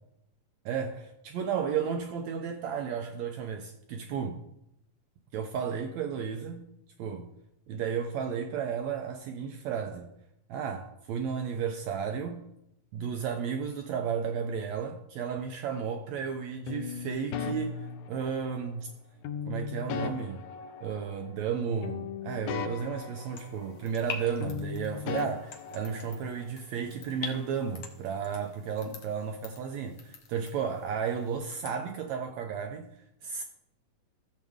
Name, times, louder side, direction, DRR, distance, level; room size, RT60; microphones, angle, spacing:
voice 1, 0.6-4.4 5.3-6.7 7.0-7.3 7.7-10.1 10.5-12.4 12.9-18.9 19.5-20.5 20.8-32.9 33.3-33.4, right 7 dB, 80° right, 1.6 m, -33 dB
sound 1, 16.7-18.7 19.2-21.6 21.8-24.1 24.4-26.5, left 7 dB, 75° left, 1.9 m, -38 dB
sound 2, 23.3-31.8, left 6 dB, 60° left, 1.8 m, -46 dB
15.0 x 7.5 x 3.6 m
omnidirectional pair, 3.9 m